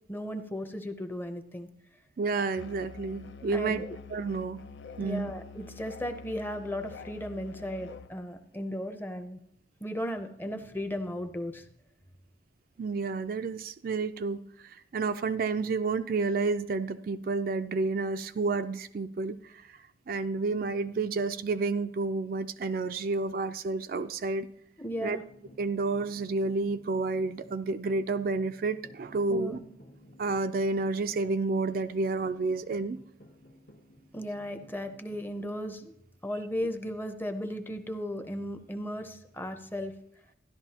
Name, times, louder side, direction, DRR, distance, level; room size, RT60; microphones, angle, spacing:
voice 1, 0.1-1.7 3.5-3.8 5.0-9.4 9.8-11.7 24.8-25.2 29.3-29.6 34.1-35.9 36.2-39.9, equal, 10° left, 7 dB, 0.6 m, -36 dB
voice 2, 2.2-4.6 5.0-5.3 12.8-19.8 20.1-24.5 25.0-25.2 25.6-29.6 30.2-33.0, right 3 dB, 50° right, 10 dB, 0.3 m, -30 dB
Musical instrument, 2.6-8.1, left 4 dB, 75° left, 0.6 m, -46 dB
sound 1, 25.2-35.3, equal, 60° left, 1.2 m, -55 dB
12.5 x 11.0 x 2.8 m, 0.74 s
head